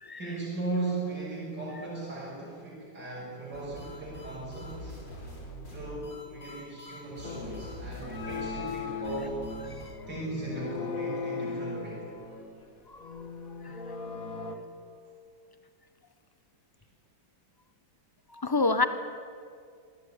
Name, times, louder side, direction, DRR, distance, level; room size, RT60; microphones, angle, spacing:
voice 1, 0.2-4.9 5.7-9.4 10.1-12.1, right 2 dB, 55° right, -6 dB, 6.9 m, -37 dB
sound 1, 3.5-9.9, right 1 dB, 60° left, 6.2 m, -44 dB
sound 2, 7.2-14.6, left 4 dB, 45° left, 2.1 m, -38 dB
voice 2, 18.3-18.8, left 3 dB, 15° left, 10 dB, 1.1 m, -28 dB
26.5 x 18.5 x 9.9 m, 2.3 s
omnidirectional pair, 2.2 m